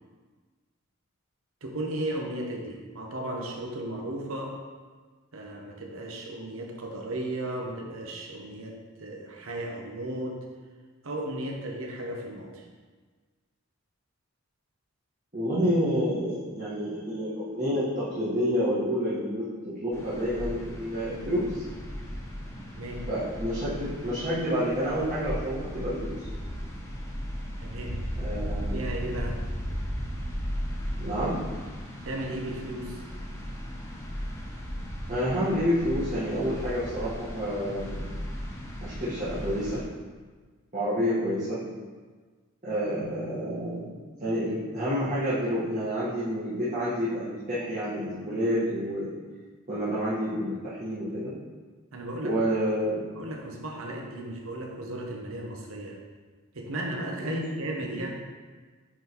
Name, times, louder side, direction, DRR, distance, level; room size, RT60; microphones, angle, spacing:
voice 1, 1.6-4.6 5.3-10.4 11.0-12.6 22.7-23.0 27.6-27.9 28.5-29.4 32.0-33.0 51.9-52.4 53.2-56.0 56.5-58.2, right 1 dB, 85° right, 1 dB, 0.9 m, -35 dB
voice 2, 15.3-21.6 23.1-26.1 28.2-28.9 31.0-31.3 35.1-38.1 38.8-39.8 40.7-41.6 42.6-43.9 44.2-49.1 49.7-51.3 52.2-53.0 57.2-57.4 57.8-58.0, equal, 40° right, -11 dB, 1.4 m, -29 dB
sound 1, 19.9-39.8, equal, 15° left, 0.8 m, -36 dB
8.8 x 3.9 x 3.0 m, 1.4 s
head